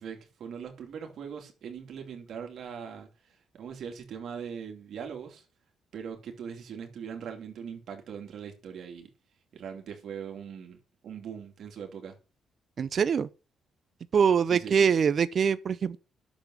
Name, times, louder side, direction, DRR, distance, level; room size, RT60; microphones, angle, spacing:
voice 1, 0.0-3.1 3.5-5.4 5.9-9.1 9.5-12.1 14.5-14.8, right 7 dB, 65° right, 2.9 m, -41 dB
voice 2, 12.8-13.3 14.1-16.0, right 7 dB, 50° right, 0.6 m, -24 dB
10.5 x 7.3 x 6.3 m
cardioid pair, 90°, 0 cm